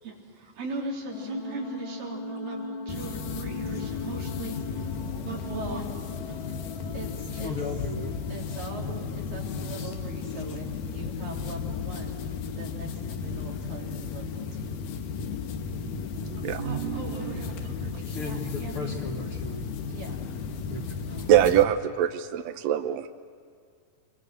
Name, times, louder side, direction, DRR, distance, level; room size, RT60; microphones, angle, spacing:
voice 1, 0.0-6.6 6.9-7.6 8.3-12.2 12.6-14.7 16.6-19.3 19.9-20.3 21.1-21.3, right 3 dB, 90° right, -2 dB, 5.2 m, -40 dB
sound 1, 1.1-12.6, left 3 dB, 65° left, 3.5 m, -41 dB
sound 2, 2.9-21.6, left 6 dB, 90° left, 2.9 m, -34 dB
voice 2, 7.4-8.1 9.8-9.9 18.1-19.6 20.7-20.9, left 3 dB, 50° left, 3 dB, 1.9 m, -35 dB
voice 3, 16.2-17.3 17.8-17.9 21.3-23.1, right 11 dB, 70° right, 8 dB, 1.7 m, -24 dB
26.5 x 23.0 x 6.7 m, 2.1 s
omnidirectional pair, 3.8 m